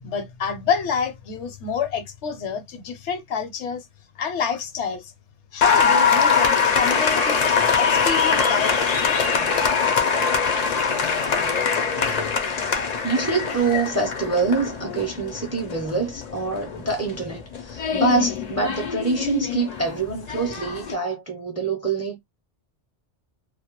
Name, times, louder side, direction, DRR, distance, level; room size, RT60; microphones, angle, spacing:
voice 1, 0.0-3.8 4.2-5.1 5.5-7.5 7.8-9.2, left 6 dB, 75° left, 0.9 m, -28 dB
Applause, 5.6-20.9, left 6 dB, 55° left, 0.5 m, -23 dB
voice 2, 13.0-22.2, right 4 dB, 20° right, 0.4 m, -25 dB
2.2 x 2.1 x 2.9 m
omnidirectional pair, 1.2 m